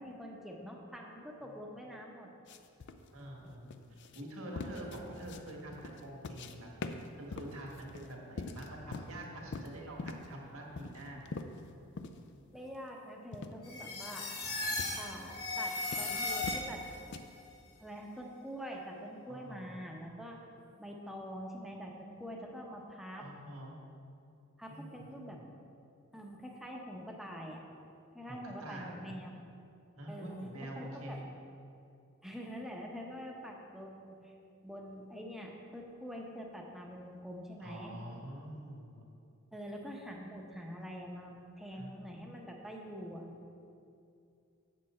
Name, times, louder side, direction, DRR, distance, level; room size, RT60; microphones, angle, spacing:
voice 1, 0.0-2.3 4.7-5.0 12.5-14.6 15.0-16.8 17.8-20.4 20.8-23.2 24.6-25.4 26.1-27.6 28.1-29.4 30.1-30.4 30.7-31.2 32.2-34.3 34.6-37.9 39.5-43.3, equal, ahead, -1 dB, 0.8 m, -45 dB
sound 1, 2.5-6.6 6.8-9.2 9.5-10.3 10.8-12.2 12.6-12.7 13.3-13.6 14.1-14.4 14.8-15.1 15.6-17.2, left 3 dB, 55° left, 0.4 m, -44 dB
voice 2, 3.1-11.3 19.2-19.8 23.2-23.8 24.7-25.4 28.2-29.2 29.9-31.3 37.6-39.0 41.7-42.1, right 1 dB, 80° right, -2 dB, 1.6 m, -46 dB
sound 2, 13.6-17.0, left 2 dB, 75° left, 1.3 m, -37 dB
7.6 x 7.6 x 4.3 m, 2.5 s
head